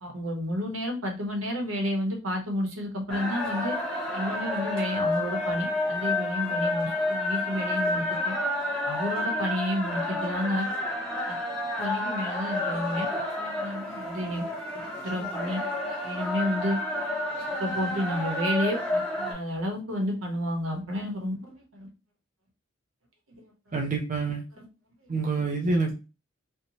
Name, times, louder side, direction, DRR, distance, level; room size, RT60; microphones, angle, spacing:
voice 1, 0.0-3.7 4.1-8.3 8.8-10.7 11.3-11.4 11.8-13.1 13.4-14.5 15.0-15.6 16.0-16.8 17.6-21.9 24.6-24.7 25.7-26.0, equal, 90° right, 2 dB, 0.8 m, -31 dB
sound 1, 3.1-19.3, left 2 dB, 5° left, 0.9 m, -30 dB
voice 2, 23.7-24.4 25.1-26.0, right 3 dB, 40° right, 2 dB, 0.4 m, -27 dB
2.6 x 2.1 x 2.9 m, 0.31 s
head